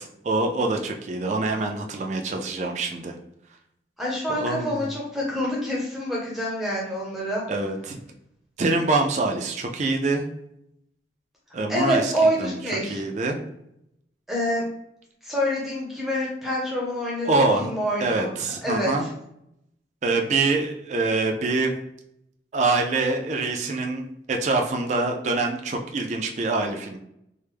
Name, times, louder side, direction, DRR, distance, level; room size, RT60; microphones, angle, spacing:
voice 1, 0.0-3.2 4.4-4.9 7.5-8.0 8.6-10.3 11.5-12.6 12.9-13.4 17.3-17.7 18.0-19.1 20.0-21.7 22.5-27.0, right 3 dB, 40° right, 2 dB, 0.3 m, -25 dB
voice 2, 4.0-7.4 11.7-13.0 14.3-14.6 15.2-18.3 18.6-19.1, equal, ahead, -5 dB, 0.6 m, -26 dB
3.2 x 2.0 x 3.3 m, 0.78 s
head